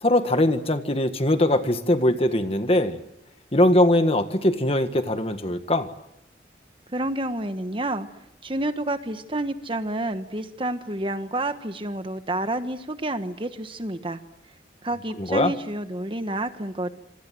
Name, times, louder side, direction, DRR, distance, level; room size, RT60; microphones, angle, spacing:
voice 1, 0.0-3.0 3.5-5.9 15.2-15.5, left 1 dB, 30° left, 8 dB, 1.6 m, -21 dB
voice 2, 6.9-8.1 8.4-14.2 14.8-16.9, right 1 dB, 25° right, 9 dB, 1.2 m, -29 dB
27.0 x 26.0 x 7.7 m, 0.86 s
head